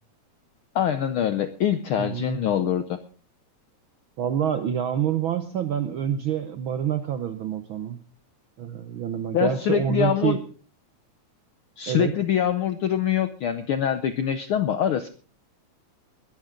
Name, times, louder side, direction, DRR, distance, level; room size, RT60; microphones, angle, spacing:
voice 1, 0.7-3.0 9.3-10.4 11.8-15.1, left 9 dB, 75° left, 11 dB, 1.2 m, -24 dB
voice 2, 2.0-2.4 4.2-8.0 8.6-10.4 11.9-12.1, right 9 dB, 70° right, 10 dB, 1.2 m, -27 dB
21.5 x 12.0 x 3.8 m, 0.38 s
omnidirectional pair, 3.3 m